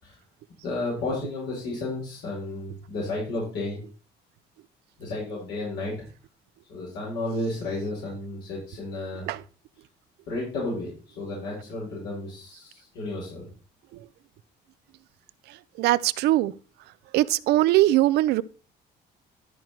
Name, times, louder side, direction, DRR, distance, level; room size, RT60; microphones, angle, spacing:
voice 1, 0.6-3.8 5.0-5.9 6.7-9.3 10.3-13.5, left 2 dB, 85° left, 5.6 m, -32 dB
voice 2, 15.8-16.5 17.1-18.4, right 16 dB, 80° right, 0.5 m, -21 dB
12.5 x 4.6 x 4.5 m
cardioid pair, 110°, 17 cm